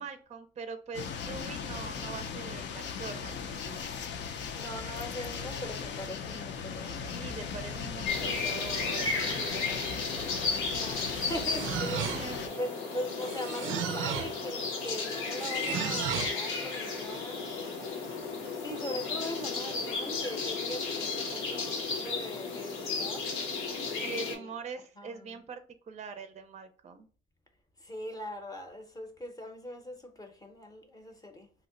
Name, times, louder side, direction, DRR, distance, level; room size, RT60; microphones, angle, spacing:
voice 1, 0.0-3.8 7.0-10.1 12.0-12.6 24.0-25.6 25.9-27.1, right 5 dB, 35° right, 0.5 m, -43 dB
sound 1, 0.9-12.5, left 6 dB, 65° left, 0.5 m, -38 dB
voice 2, 4.5-7.0 10.1-12.2 12.6-18.1 18.6-23.3 23.9-24.5 25.0-25.4 27.8-31.5, left 1 dB, 20° left, 0.7 m, -41 dB
sound 2, 8.1-24.4, left 4 dB, 85° left, 0.8 m, -34 dB
sound 3, 10.9-12.5 13.2-14.4 15.4-16.4, right 8 dB, 85° right, 0.5 m, -35 dB
2.8 x 2.1 x 3.7 m
cardioid pair, 90°, 20 cm